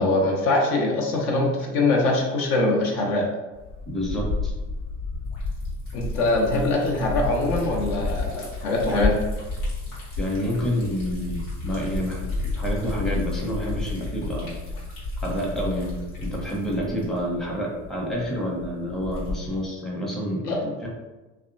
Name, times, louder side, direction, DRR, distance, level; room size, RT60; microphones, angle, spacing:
voice 1, 0.0-3.3 5.9-9.2 20.5-20.7, left 2 dB, 65° left, 0 dB, 0.7 m, -23 dB
Liquid, 3.5-19.6, left 2 dB, 85° left, 1.1 m, -31 dB
voice 2, 3.9-4.5 10.2-12.2 12.6-14.5 15.2-20.5 20.8-20.9, equal, ahead, -3 dB, 0.6 m, -28 dB
2.7 x 2.2 x 2.5 m, 1.1 s
hypercardioid pair, 70°, 39 cm